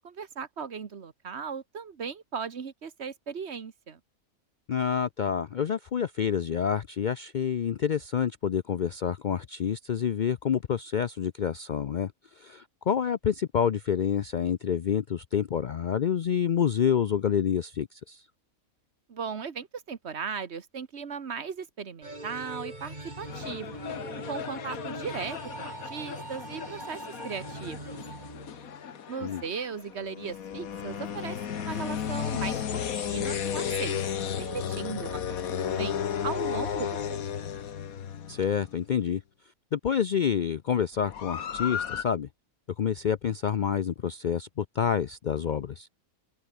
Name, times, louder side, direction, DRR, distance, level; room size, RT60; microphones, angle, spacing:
voice 1, 0.0-4.0 19.1-23.8 24.3-28.0 29.1-34.1 34.4-37.3, right 6 dB, 50° right, 1.5 m, -37 dB
voice 2, 4.7-12.1 12.4-18.2 29.2-29.4 38.3-39.2 39.7-42.3 42.8-45.9, left 8 dB, 90° left, 0.4 m, -28 dB
sound 1, 22.0-29.0, right 2 dB, 30° right, 4.3 m, -42 dB
sound 2, 23.3-38.9 41.0-42.0, left 8 dB, 70° left, 1.6 m, -34 dB
omnidirectional pair, 1.5 m